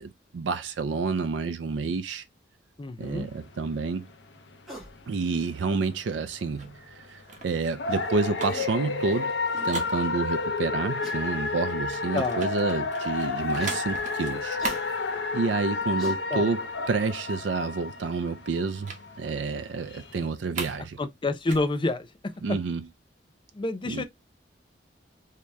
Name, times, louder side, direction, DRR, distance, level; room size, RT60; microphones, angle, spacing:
voice 1, 0.0-2.2 3.0-4.1 5.1-9.3 9.6-14.6 15.3-18.9 19.2-21.0 22.4-22.9 23.9-24.0, right 4 dB, 80° right, 0.4 m, -29 dB
voice 2, 2.8-3.3 12.1-12.4 16.3-16.5 21.0-22.1 23.5-24.0, left 2 dB, 25° left, 0.5 m, -28 dB
sound 1, 3.0-20.3, left 3 dB, 70° left, 0.7 m, -31 dB
sound 2, 4.7-4.9 6.4-6.5 8.1-8.2 8.5-8.7 9.2-9.3 9.5-9.8 11.0-11.2 12.0-12.1 13.6-13.8 14.6-14.8 15.6-15.7 16.0-16.2, right 1 dB, ahead, 1.7 m, -42 dB
sound 3, 4.9-10.6 11.0-15.9 16.1-16.4 16.7-16.8 17.1-17.8 18.9-19.1 19.4-19.5 19.9-20.9 21.2-22.9, right 4 dB, 45° right, 1.1 m, -41 dB
3.4 x 2.8 x 3.1 m
head